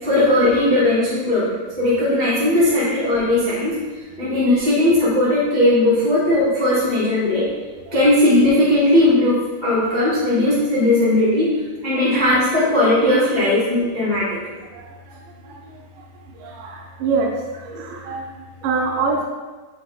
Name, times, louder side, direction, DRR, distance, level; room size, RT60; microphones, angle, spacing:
voice 1, 0.0-3.8 4.2-7.5 7.9-14.4, left 1 dB, 30° left, -10 dB, 0.8 m, -18 dB
voice 2, 16.4-17.3 17.6-18.2 18.6-19.2, right 4 dB, 80° right, 0 dB, 2.0 m, -24 dB
6.1 x 4.6 x 4.2 m, 1.3 s
omnidirectional pair, 4.5 m